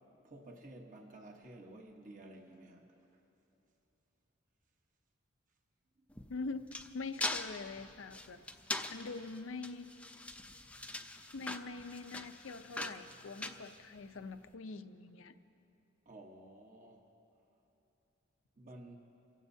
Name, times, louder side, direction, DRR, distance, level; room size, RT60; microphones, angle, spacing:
voice 1, 0.2-3.1 16.0-17.0 18.6-19.0, right 1 dB, 40° right, 1 dB, 1.2 m, -53 dB
sound 1, 6.1-14.4, left 2 dB, 5° left, 0.5 m, -42 dB
voice 2, 6.3-8.4 8.9-9.9 10.1-10.3 11.3-15.3, left 3 dB, 70° left, 10 dB, 0.6 m, -44 dB
28.0 x 16.0 x 2.7 m, 2.9 s
head